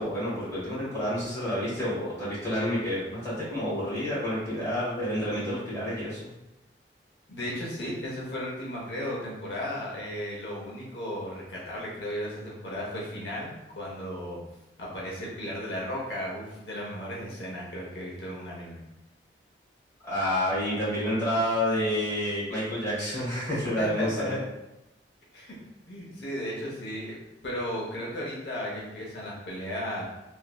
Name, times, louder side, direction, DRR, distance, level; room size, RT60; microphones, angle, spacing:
voice 1, 0.0-6.3 20.0-24.3, equal, 15° left, -10 dB, 1.4 m, -29 dB
voice 2, 7.3-14.4 14.8-18.8 23.8-24.4 25.3-25.6 25.9-30.0, equal, 80° left, -4 dB, 0.7 m, -35 dB
3.0 x 2.5 x 2.3 m, 0.94 s
head